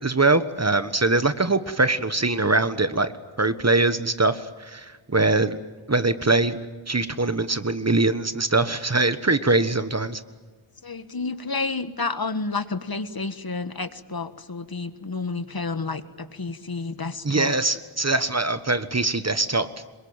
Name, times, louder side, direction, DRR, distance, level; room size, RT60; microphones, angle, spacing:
voice 1, 0.0-3.1 3.4-5.6 5.9-6.6 6.9-10.2 17.2-19.7, right 2 dB, 30° right, 12 dB, 1.5 m, -22 dB
voice 2, 10.8-17.5, left 3 dB, 50° left, 12 dB, 1.6 m, -30 dB
27.0 x 23.0 x 9.0 m, 1.3 s
wide cardioid pair, 65°, 48 cm